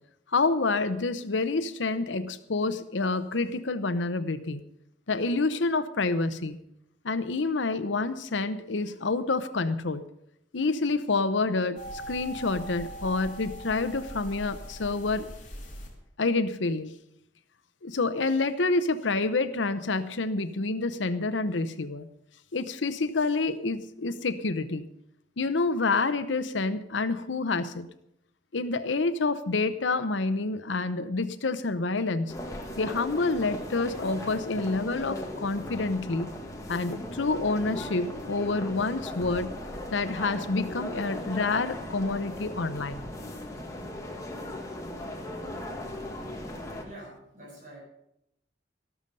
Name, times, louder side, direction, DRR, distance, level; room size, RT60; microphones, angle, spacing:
voice 1, 0.3-4.6 5.1-6.6 7.0-10.0 10.5-15.3 16.2-16.9 17.8-22.1 22.5-24.9 25.4-27.9 28.5-32.3 32.8-36.3 36.7-39.5 39.9-43.0, left 3 dB, 80° left, 12 dB, 0.8 m, -28 dB
sound 1, 11.8-15.9, equal, 40° left, 3.5 m, -41 dB
sound 2, 32.3-46.8, left 1 dB, 15° left, 1.9 m, -38 dB
voice 2, 46.8-47.8, right 1 dB, 40° right, -3 dB, 7.7 m, -46 dB
13.0 x 13.0 x 5.3 m, 0.79 s
head